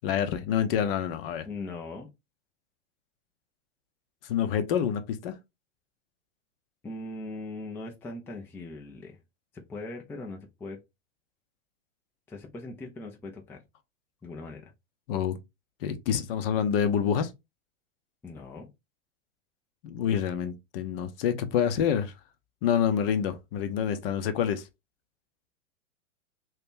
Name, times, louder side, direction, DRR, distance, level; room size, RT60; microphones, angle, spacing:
voice 1, 0.0-1.5 4.3-5.4 15.1-15.4 15.8-17.3 19.8-22.1 22.6-24.7, left 8 dB, 45° left, 0.7 m, -27 dB
voice 2, 1.5-2.1 6.8-9.2 9.5-10.8 12.3-13.6 14.2-14.7 18.2-18.7, left 2 dB, 5° left, 0.5 m, -40 dB
2.9 x 2.8 x 3.5 m
hypercardioid pair, 105°, 39 cm